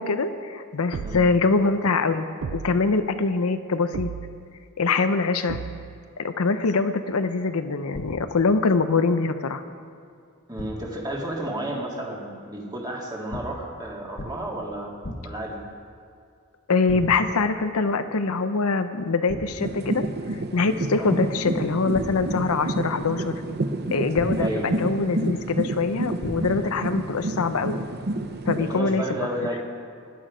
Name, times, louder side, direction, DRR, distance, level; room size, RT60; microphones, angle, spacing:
voice 1, 0.0-2.3 2.5-4.1 4.8-5.6 6.2-9.6 16.7-20.0 20.5-23.3 23.9-27.8 28.5-29.0, left 4 dB, 80° left, 9 dB, 0.7 m, -23 dB
sound 1, 0.9-1.5 2.4-3.0 3.9-4.6 5.5-6.1, right 6 dB, 80° right, 0.4 m, -35 dB
sound 2, 7.9-8.5 10.6-11.0 13.3-13.8 14.2-14.6 15.0-15.6 16.9-17.4 19.3-19.8 21.9-22.6 24.2-24.7 26.2-26.8, left 1 dB, 50° left, 1.1 m, -37 dB
voice 2, 10.5-14.9 15.2-15.6 21.0-21.2 24.4-24.7 28.6-29.6, right 1 dB, 20° right, -2 dB, 2.2 m, -32 dB
sound 3, 19.6-28.8, right 2 dB, 50° right, 0.7 m, -29 dB
17.0 x 11.0 x 5.0 m, 2.3 s
head